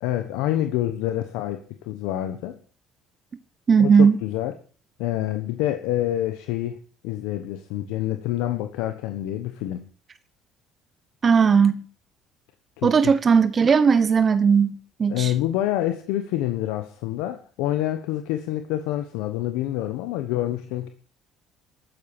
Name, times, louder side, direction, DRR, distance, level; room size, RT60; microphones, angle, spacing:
voice 1, 0.0-2.6 3.8-4.5 5.0-6.8 7.0-9.8 12.8-13.1 15.1-20.9, left 13 dB, 85° left, 1.2 m, -27 dB
voice 2, 3.7-4.2 11.2-11.8 12.8-15.3, right 6 dB, 35° right, 1.0 m, -17 dB
13.0 x 9.2 x 8.5 m
supercardioid pair, 90°, 0 cm